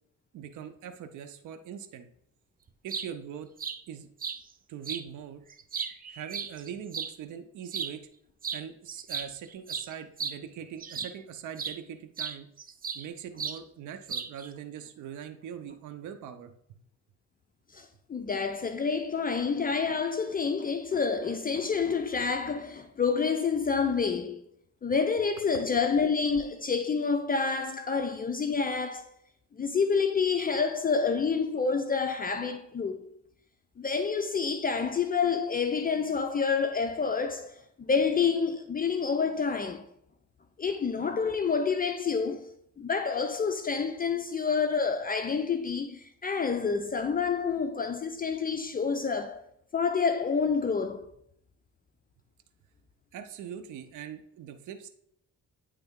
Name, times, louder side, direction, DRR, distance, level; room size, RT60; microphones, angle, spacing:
voice 1, 0.3-2.1 2.8-3.5 3.9-4.1 4.7-5.4 6.1-8.0 8.5-12.5 12.9-16.8 53.1-54.9, right 8 dB, 75° right, 0.7 m, -42 dB
sound 1, 2.7-3.1 3.6-3.8 4.2-4.4 4.8-5.0 5.5-7.1 7.7-7.9 8.4-8.6 8.9-11.2 11.6-11.8 12.2-13.1 13.4-13.6 14.1-14.5, right 6 dB, 30° right, 0.5 m, -35 dB
voice 2, 17.7-24.4 24.8-29.1 29.5-33.1 33.8-39.9 40.6-42.5 42.8-49.4 49.7-51.0, left 5 dB, 30° left, 0.5 m, -28 dB
9.0 x 3.4 x 3.6 m
cardioid pair, 90°, 30 cm